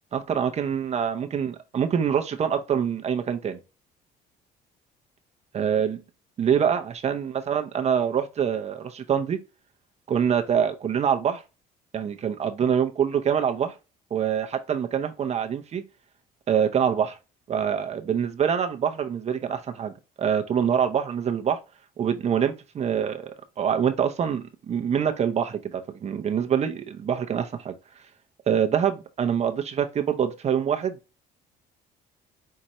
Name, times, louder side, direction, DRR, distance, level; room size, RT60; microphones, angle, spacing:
voice 1, 0.1-3.6 5.5-6.0 6.4-9.4 10.1-11.4 11.9-13.7 14.1-15.8 16.5-17.2 17.5-19.9 20.2-21.6 22.0-27.7 28.5-31.0, right 8 dB, 40° right, 0.7 m, -25 dB
5.5 x 2.5 x 3.0 m
cardioid pair, 110°, 17 cm